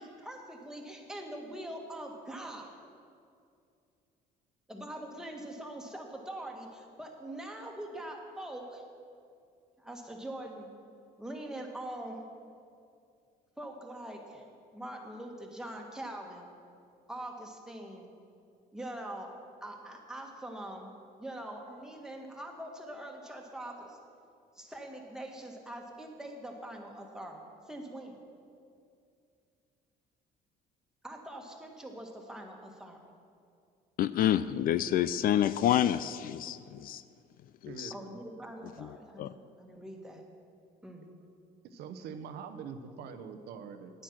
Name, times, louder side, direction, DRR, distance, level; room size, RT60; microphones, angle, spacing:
voice 1, 0.0-2.7 4.7-8.8 9.8-10.7 11.2-12.2 13.6-14.4 14.7-16.5 17.1-18.1 18.7-19.3 19.6-20.9 21.2-24.0 24.5-28.2 31.0-33.0 37.9-40.2 40.8-41.0 43.0-43.2 43.9-44.0, right 1 dB, 5° right, 1.6 m, -43 dB
voice 2, 34.0-37.0 37.6-37.9 38.8-39.3, left 11 dB, 60° left, 0.4 m, -28 dB
voice 3, 37.7-38.2 41.6-43.9, right 6 dB, 75° right, 0.8 m, -44 dB
9.7 x 9.2 x 6.0 m
cardioid pair, 110°, 17 cm